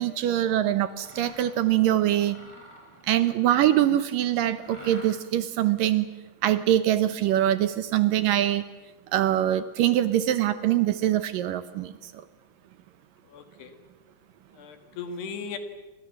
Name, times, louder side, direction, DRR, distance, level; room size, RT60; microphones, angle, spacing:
voice 1, 0.0-2.4 3.1-6.1 6.4-8.7 9.1-12.2, right 12 dB, 70° right, 13 dB, 2.4 m, -23 dB
Mechanisms, 0.9-1.6 2.1-4.0 4.5-5.4, equal, 5° left, 7.0 m, -47 dB
voice 2, 13.3-13.8 14.6-15.6, left 5 dB, 85° left, 9 dB, 4.3 m, -37 dB
29.5 x 25.5 x 7.3 m, 1.1 s
omnidirectional pair, 4.6 m